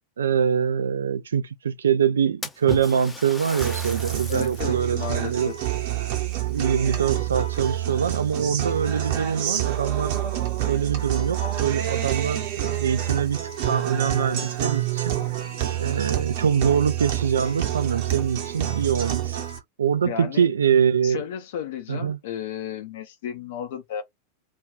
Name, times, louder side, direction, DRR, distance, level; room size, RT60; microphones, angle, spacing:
voice 1, 0.2-5.5 6.5-10.4 10.7-13.4 13.7-15.2 15.8-19.4 19.8-21.2 21.9-22.2, right 7 dB, 70° right, 0.3 m, -24 dB
Splash splatter, 2.4-4.7 5.2-5.3 6.2-7.3 7.6-8.1 8.9-9.0 9.5-9.6 11.7-11.8 12.1-12.2 12.8-12.9 13.3-13.4 14.1-14.7, left 2 dB, 10° left, 0.5 m, -37 dB
Guitar, 3.6-19.6, right 12 dB, 50° right, 0.9 m, -27 dB
voice 2, 4.3-5.5 20.0-20.5 21.0-24.0, left 9 dB, 55° left, 0.6 m, -33 dB
2.4 x 2.3 x 3.4 m
figure-of-eight pair, 90°, 0 cm